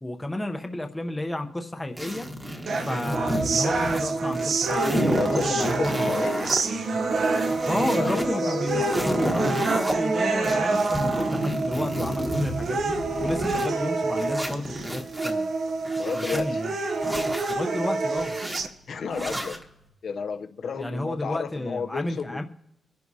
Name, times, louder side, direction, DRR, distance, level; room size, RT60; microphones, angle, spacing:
voice 1, 0.0-2.3 2.8-6.2 7.7-12.9 13.2-15.5 16.1-16.8 17.5-18.3 20.8-22.4, left 1 dB, 10° left, 0.8 m, -31 dB
sound 1, 2.0-4.1 4.3-6.6 7.0-8.2 8.6-9.9 10.4-13.7 14.2-15.3 15.8-16.4 17.0-17.6 18.1-18.6 19.1-19.6, equal, 10° right, 1.2 m, -31 dB
sound 2, 2.7-18.7, right 3 dB, 50° right, 0.9 m, -27 dB
voice 2, 5.2-6.5 8.0-9.2 16.0-16.5 18.9-19.6 20.0-22.4, left 5 dB, 50° left, 0.7 m, -32 dB
25.0 x 11.0 x 2.8 m
wide cardioid pair, 180°, 0 cm